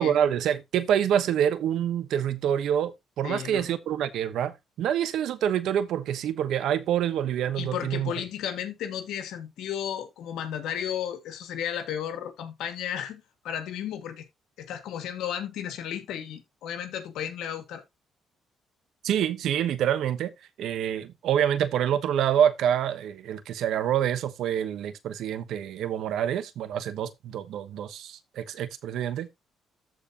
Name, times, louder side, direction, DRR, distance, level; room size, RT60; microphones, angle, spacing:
voice 1, 0.0-4.5 4.8-8.1 19.0-20.3 20.6-29.3, right 9 dB, 80° right, 1.1 m, -26 dB
voice 2, 3.2-3.6 7.6-14.3 14.6-17.8, left 9 dB, 85° left, 2.0 m, -34 dB
14.0 x 4.8 x 2.9 m
cardioid pair, 90°, 0 cm